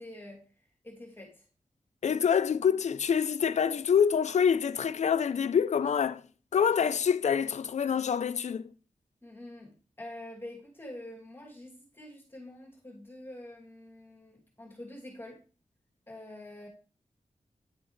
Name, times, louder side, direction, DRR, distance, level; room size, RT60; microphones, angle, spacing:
voice 1, 0.0-1.4 9.2-15.4 16.1-16.7, left 1 dB, 15° left, 2.5 m, -46 dB
voice 2, 2.0-6.2 6.5-8.6, left 7 dB, 65° left, 0.5 m, -26 dB
9.7 x 7.9 x 3.1 m
wide cardioid pair, 120°, 13 cm